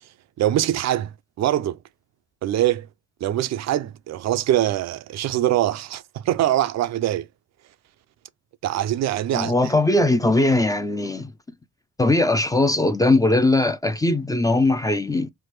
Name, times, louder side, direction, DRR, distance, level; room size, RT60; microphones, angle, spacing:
voice 1, 0.4-1.8 2.4-2.9 3.2-7.3 8.6-9.7, right 13 dB, 60° right, 0.4 m, -23 dB
voice 2, 9.3-11.3 12.0-15.3, left 2 dB, 10° left, 0.4 m, -20 dB
3.3 x 2.1 x 3.0 m
cardioid pair, 90°, 30 cm